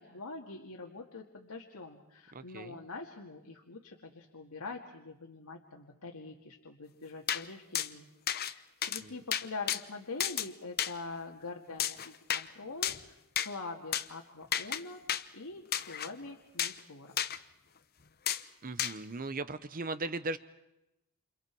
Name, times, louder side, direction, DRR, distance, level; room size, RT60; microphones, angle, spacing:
voice 1, 0.0-8.1 8.4-15.0 15.3-17.2, left 3 dB, 85° left, 0 dB, 2.0 m, -44 dB
voice 2, 2.3-2.8 18.6-20.4, right 3 dB, 40° right, 13 dB, 0.8 m, -37 dB
sound 1, 7.3-7.4 7.7-7.9 8.3-8.5 8.8-9.0 9.3-9.8 10.2-10.5 10.8-10.9 11.8-12.4 12.8-13.0 13.4-13.5 13.9-14.0 14.5-14.8 15.1-15.2 15.7-16.1 16.6-16.8 17.2-17.4 18.3-18.4 18.8-18.9, left 10 dB, 45° left, 0.9 m, -32 dB
28.5 x 28.5 x 4.6 m, 0.89 s
head